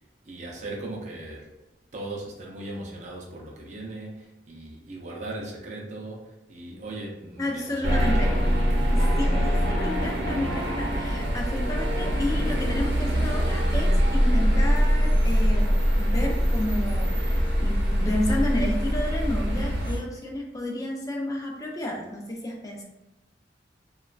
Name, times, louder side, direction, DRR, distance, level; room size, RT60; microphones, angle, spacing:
voice 1, 0.2-1.5 1.9-8.3, right 2 dB, 40° right, -2 dB, 0.5 m, -38 dB
voice 2, 7.4-8.3 8.9-22.9, left 1 dB, 20° left, 0 dB, 0.4 m, -31 dB
sound 1, 7.8-20.0, equal, 85° right, 0.7 m, -23 dB
3.0 x 2.2 x 2.3 m, 0.96 s
head